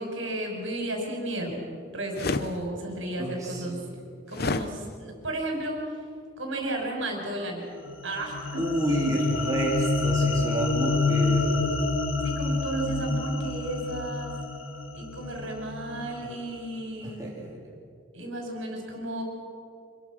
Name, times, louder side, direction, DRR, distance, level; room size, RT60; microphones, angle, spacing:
voice 1, 0.0-3.8 4.3-5.8 6.4-7.7 8.0-8.6 12.2-14.4 14.9-17.2 18.1-19.2, right 1 dB, 70° right, 1 dB, 5.7 m, -33 dB
sound 1, 2.1-2.5 4.3-4.7, left 3 dB, 50° left, 0.8 m, -28 dB
voice 2, 3.2-3.8 8.6-11.8 17.2-17.5, right 1 dB, 15° right, -4 dB, 3.7 m, -29 dB
sound 2, 7.9-16.3, left 3 dB, 90° left, 2.2 m, -28 dB
25.5 x 22.5 x 6.3 m, 2.4 s
head